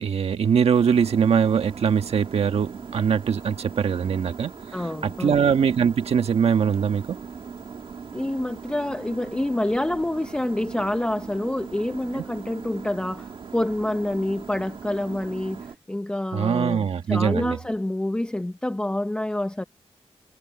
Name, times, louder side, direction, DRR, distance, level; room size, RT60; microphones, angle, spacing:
voice 1, 0.0-4.5 5.0-7.2 12.1-12.2 16.3-17.6, right 7 dB, 70° right, 1.4 m, -22 dB
sound 1, 0.7-15.7, right 6 dB, 50° right, 1.6 m, -40 dB
voice 2, 4.7-5.4 8.1-19.6, left 1 dB, 10° left, 0.7 m, -27 dB
wide cardioid pair, 170°, 11 cm